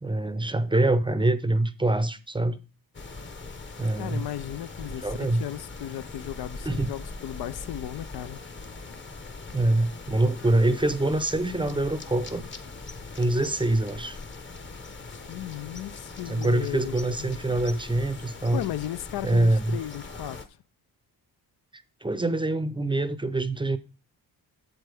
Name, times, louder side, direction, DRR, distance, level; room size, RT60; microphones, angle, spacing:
voice 1, 0.0-2.6 3.8-4.2 5.0-5.4 6.6-6.9 9.5-12.4 13.2-14.2 16.3-18.6 19.2-19.8 22.0-23.8, right 2 dB, 15° right, 0.6 m, -25 dB
sound 1, 2.9-20.5, left 3 dB, 30° left, 0.9 m, -41 dB
voice 2, 4.0-8.4 15.1-17.3 18.5-20.4, left 13 dB, 70° left, 0.5 m, -36 dB
8.0 x 7.5 x 3.4 m
cardioid pair, 90°, 39 cm